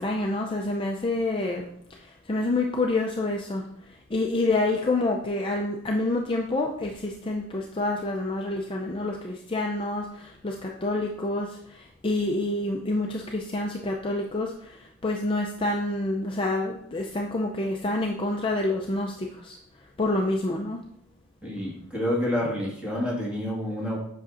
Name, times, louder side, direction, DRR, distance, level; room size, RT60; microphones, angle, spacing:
voice 1, 0.0-1.7 2.0-19.6 20.0-20.8, left 2 dB, 25° left, 0 dB, 0.4 m, -28 dB
voice 2, 21.4-24.0, left 1 dB, 5° right, -5 dB, 1.7 m, -28 dB
8.0 x 5.9 x 2.5 m, 0.73 s
head